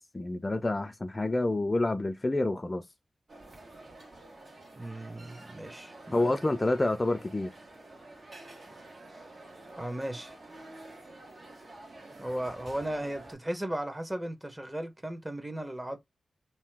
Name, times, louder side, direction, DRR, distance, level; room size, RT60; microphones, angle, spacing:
voice 1, 0.0-2.8 6.1-7.5, left 2 dB, 35° left, 0.4 m, -28 dB
sound 1, 3.3-13.3, right 2 dB, 60° right, 1.2 m, -49 dB
voice 2, 4.7-6.6 9.8-10.3 12.2-16.0, right 1 dB, 15° right, 0.9 m, -36 dB
2.8 x 2.1 x 3.3 m
cardioid pair, 45°, 0 cm